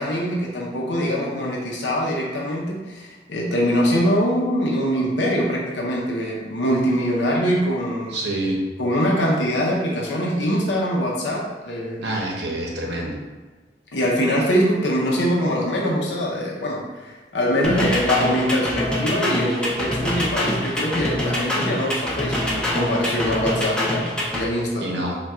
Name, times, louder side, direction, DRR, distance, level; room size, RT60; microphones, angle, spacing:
voice 1, 0.0-8.2 8.8-12.0 13.9-25.0, equal, 80° left, -3 dB, 0.6 m, -23 dB
voice 2, 8.1-8.6 12.0-13.2 24.8-25.2, right 1 dB, 70° right, -1 dB, 0.8 m, -27 dB
sound 1, 17.6-24.5, left 1 dB, 5° left, 0.5 m, -25 dB
3.5 x 2.3 x 4.2 m, 1.3 s
head